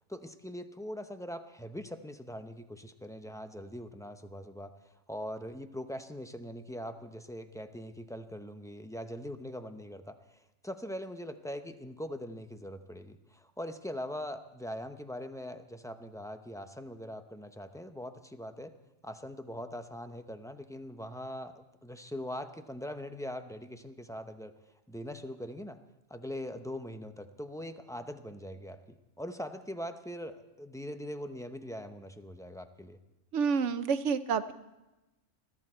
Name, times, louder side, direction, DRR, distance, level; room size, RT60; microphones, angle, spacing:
voice 1, 0.1-4.7 5.1-18.7 19.0-24.5 24.9-25.8 26.1-33.0, equal, 5° left, 8 dB, 0.5 m, -42 dB
voice 2, 33.3-34.5, right 6 dB, 75° right, 12 dB, 1.1 m, -28 dB
21.5 x 14.0 x 4.4 m, 1.0 s
omnidirectional pair, 1.3 m